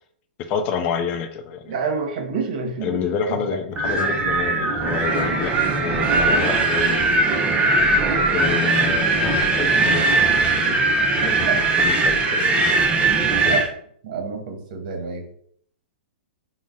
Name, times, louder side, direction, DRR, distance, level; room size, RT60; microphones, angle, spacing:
voice 1, 0.5-1.7 2.8-7.6 8.3-10.2 10.6-10.8 11.2-11.5 11.7-12.7 13.3-13.6, left 6 dB, 35° left, 7 dB, 0.5 m, -28 dB
voice 2, 1.7-3.6 11.5-11.6 13.5-13.6 14.0-15.3, right 5 dB, 55° right, 4 dB, 0.9 m, -28 dB
Wind, 3.8-13.7, right 3 dB, 20° right, 0.5 m, -20 dB
3.9 x 2.1 x 3.6 m, 0.64 s
hypercardioid pair, 140°, 5 cm